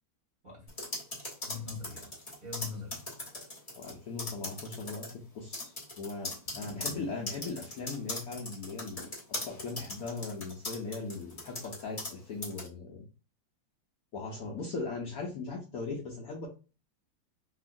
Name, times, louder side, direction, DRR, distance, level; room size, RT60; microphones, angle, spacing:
sound 1, 0.7-3.9 4.2-5.1 5.5-12.1 12.4-12.7, left 2 dB, 30° left, 0.7 m, -39 dB
voice 1, 1.5-2.1 2.4-3.0 6.5-7.1, left 4 dB, 30° right, 1.1 m, -42 dB
voice 2, 3.7-9.1 9.4-13.0 14.1-16.5, left 4 dB, 65° left, 0.9 m, -39 dB
3.0 x 2.8 x 2.5 m
omnidirectional pair, 2.0 m